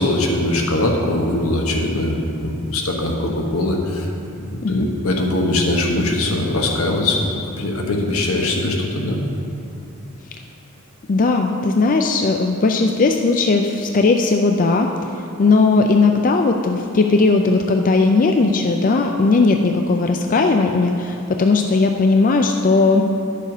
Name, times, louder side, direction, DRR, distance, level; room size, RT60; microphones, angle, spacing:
voice 1, 0.0-4.1 4.4-9.2, left 1 dB, 80° left, 1 dB, 1.3 m, -21 dB
voice 2, 11.1-15.1 15.4-23.0, left 3 dB, 40° left, 4 dB, 0.4 m, -17 dB
10.5 x 6.7 x 4.9 m, 2.7 s
head